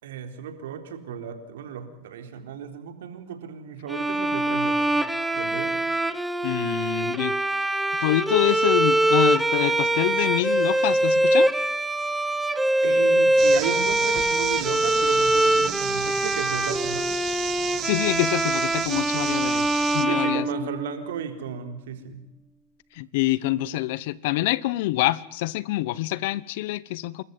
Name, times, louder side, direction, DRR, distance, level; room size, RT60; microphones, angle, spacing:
voice 1, 0.0-5.0 5.3-5.7 12.8-17.1 20.0-22.2, right 8 dB, 85° right, 3.9 m, -34 dB
Bowed string instrument, 3.9-21.1, right 1 dB, 5° right, 1.2 m, -23 dB
voice 2, 6.4-7.3 8.0-11.5 17.8-20.5 22.9-27.2, left 17 dB, 70° left, 1.1 m, -26 dB
sound 1, 13.4-20.1, right 12 dB, 40° right, 1.8 m, -33 dB
28.0 x 14.0 x 9.5 m
supercardioid pair, 120°, 0 cm